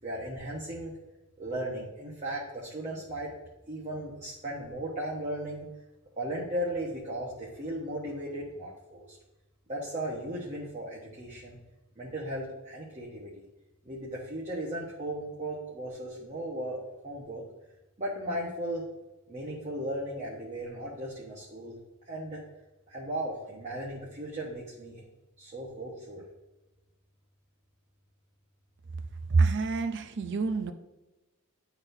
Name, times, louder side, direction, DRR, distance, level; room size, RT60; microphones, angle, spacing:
voice 1, 0.0-1.0 1.4-3.3 3.7-5.7 6.2-9.2 9.7-11.6 12.0-13.4 13.8-16.8 17.0-17.4 18.0-18.9 19.3-21.8 22.0-22.4 22.9-25.0 25.4-26.2, right 1 dB, 30° right, -5 dB, 1.1 m, -36 dB
voice 2, 29.3-30.7, right 4 dB, 55° right, 8 dB, 0.6 m, -26 dB
10.5 x 4.1 x 2.7 m, 1.0 s
head